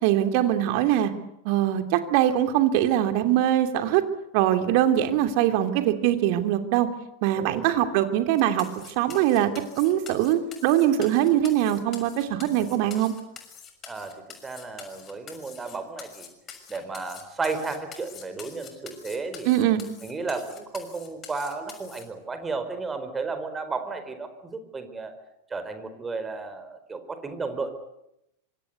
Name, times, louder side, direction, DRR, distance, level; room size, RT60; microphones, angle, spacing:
voice 1, 0.0-1.1 1.4-4.0 4.3-6.9 7.2-8.7 9.0-9.5 9.8-13.1 19.4-19.8, right 12 dB, 45° right, 8 dB, 2.9 m, -22 dB
voice 2, 7.3-7.7 13.9-14.2 14.4-16.3 16.7-19.5 20.0-25.1 25.5-27.7, right 4 dB, 15° right, 9 dB, 4.7 m, -33 dB
sound 1, 8.4-22.0, left 7 dB, 25° left, 6.3 m, -45 dB
26.5 x 25.5 x 8.2 m, 0.83 s
figure-of-eight pair, 90°, 0 cm